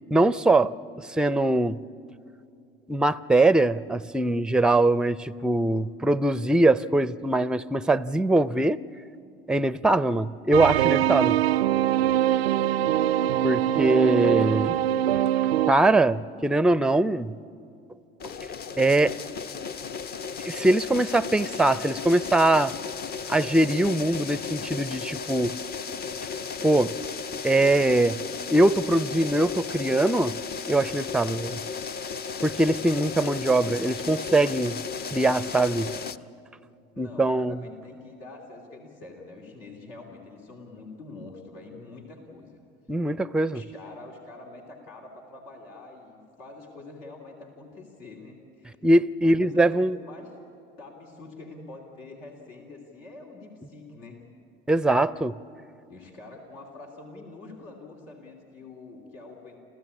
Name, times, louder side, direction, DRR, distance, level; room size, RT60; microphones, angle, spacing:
voice 1, 0.1-0.7 1.1-1.8 2.9-8.8 9.5-11.4 13.4-14.8 15.7-17.3 18.8-19.2 20.4-22.7 23.3-25.6 26.6-27.0 27.4-28.2 28.5-30.4 30.7-31.6 32.4-34.8 35.1-35.9 37.0-37.6 42.9-43.6 48.8-50.0 54.7-55.3, right 2 dB, 5° right, 18 dB, 0.5 m, -22 dB
sound 1, 10.5-15.7, right 12 dB, 85° right, 0.4 m, -23 dB
voice 2, 14.1-14.6 35.9-36.0 36.9-42.6 43.5-48.8 49.2-50.3 50.8-54.2 55.9-59.6, left 3 dB, 80° left, 0 dB, 3.0 m, -45 dB
sound 2, 18.2-36.2, left 5 dB, 35° left, 0.7 m, -35 dB
28.5 x 15.0 x 8.6 m, 2.7 s
hypercardioid pair, 65°, 30 cm